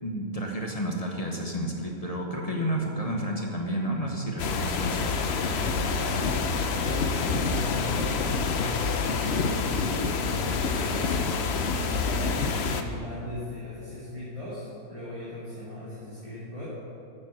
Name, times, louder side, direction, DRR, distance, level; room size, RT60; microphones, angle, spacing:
voice 1, 0.0-5.1, equal, 25° left, 0 dB, 1.1 m, -31 dB
sound 1, 4.4-12.8, left 4 dB, 55° left, 0.8 m, -27 dB
voice 2, 5.8-10.1 10.6-12.4 12.7-16.6, left 2 dB, 20° right, -10 dB, 2.6 m, -37 dB
9.6 x 8.8 x 6.4 m, 2.6 s
omnidirectional pair, 1.6 m